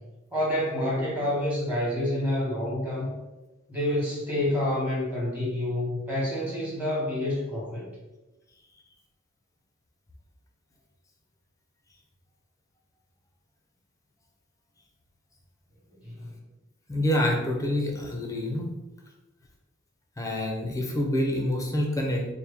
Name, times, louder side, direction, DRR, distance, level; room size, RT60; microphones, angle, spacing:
voice 1, 0.3-3.1 3.7-7.8 16.0-16.3, left 1 dB, 5° right, -7 dB, 1.4 m, -28 dB
voice 2, 16.9-18.7 20.2-22.3, left 1 dB, 15° left, 1 dB, 0.6 m, -27 dB
4.4 x 2.1 x 3.4 m, 1.1 s
head